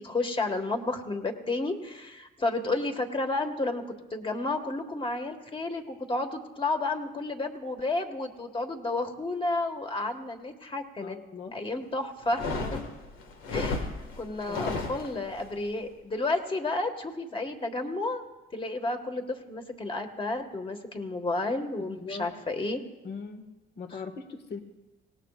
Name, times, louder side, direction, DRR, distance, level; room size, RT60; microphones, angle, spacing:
voice 1, 0.0-3.8 4.1-11.2 11.5-12.5 12.7-12.8 13.5-13.9 14.2-18.2 18.5-22.8 23.9-24.0, left 2 dB, 25° left, 5 dB, 1.8 m, -31 dB
voice 2, 11.0-11.6 12.6-12.9 14.5-14.7 21.8-22.3 23.0-23.5 23.8-24.6, left 4 dB, 55° left, 6 dB, 1.8 m, -40 dB
sound 1, 12.2-15.5, left 3 dB, 90° left, 2.0 m, -33 dB
26.0 x 18.5 x 2.5 m, 1.1 s
cardioid pair, 90°, 20 cm